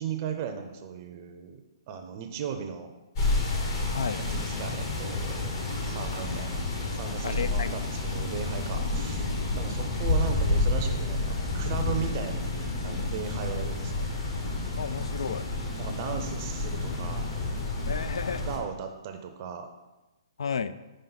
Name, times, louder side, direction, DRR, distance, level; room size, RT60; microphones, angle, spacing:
voice 1, 0.0-1.6 1.9-2.9 4.2-5.5 5.9-6.7 6.9-14.1 15.8-17.3 18.5-19.7, right 7 dB, 35° right, 6 dB, 0.5 m, -36 dB
sound 1, 3.2-18.6, left 2 dB, 45° left, 1.4 m, -30 dB
voice 2, 3.9-4.2 6.3-6.4 7.2-7.7 9.7-9.8 14.8-15.4 17.9-18.5 20.4-20.7, left 6 dB, 80° left, 13 dB, 0.3 m, -32 dB
5.6 x 5.0 x 3.9 m, 1.1 s
hypercardioid pair, 155°, 3 cm